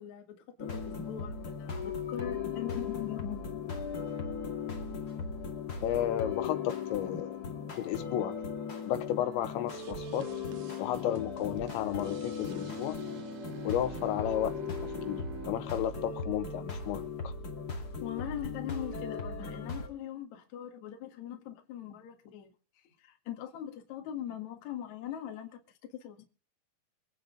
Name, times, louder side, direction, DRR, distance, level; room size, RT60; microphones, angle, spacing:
voice 1, 0.0-3.4 18.0-26.2, left 10 dB, 50° left, 2.4 m, -41 dB
sound 1, 0.6-19.9, left 5 dB, 35° left, 1.7 m, -38 dB
voice 2, 5.8-7.3 7.7-8.4 8.9-10.3 10.8-13.0 13.6-14.5 14.8-17.3, left 11 dB, 80° left, 3.2 m, -33 dB
sound 2, 9.7-14.6, right 8 dB, 70° right, 2.3 m, -52 dB
Bowed string instrument, 12.2-17.6, right 7 dB, 85° right, 3.9 m, -47 dB
25.0 x 9.1 x 3.9 m
omnidirectional pair, 5.4 m